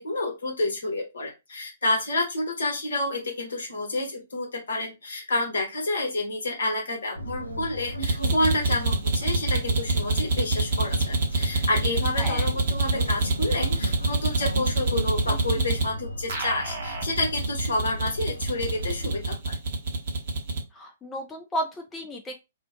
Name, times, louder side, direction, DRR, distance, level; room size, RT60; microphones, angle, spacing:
voice 1, 0.0-19.6, left 2 dB, 65° left, 1 dB, 1.0 m, -29 dB
sound 1, 7.1-19.2, left 1 dB, 85° left, 0.5 m, -36 dB
sound 2, 8.0-15.8 16.3-20.6, right 3 dB, 50° right, 0.8 m, -26 dB
voice 2, 20.7-22.3, equal, 15° left, 1 dB, 0.4 m, -33 dB
2.4 x 2.1 x 2.6 m, 0.24 s
figure-of-eight pair, 115°, 0 cm